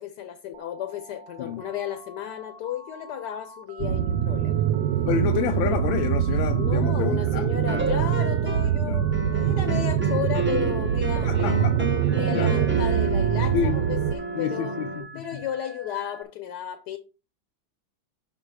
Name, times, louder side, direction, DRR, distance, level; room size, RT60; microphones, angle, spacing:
voice 1, 0.0-4.6 6.5-11.7 12.1-14.8 15.1-17.0, left 10 dB, 65° left, 1.3 m, -33 dB
Telephone, 0.5-16.2, right 2 dB, 55° right, 0.9 m, -46 dB
sound 1, 3.8-14.1, right 9 dB, 75° right, 1.2 m, -24 dB
voice 2, 5.0-7.8 8.8-9.0 11.2-11.9 12.3-12.5 13.5-13.8 14.4-15.4, left 8 dB, 90° left, 1.4 m, -29 dB
sound 2, 7.7-8.8 9.1-15.0, right 3 dB, 10° right, 0.7 m, -31 dB
6.0 x 5.7 x 4.7 m
omnidirectional pair, 2.1 m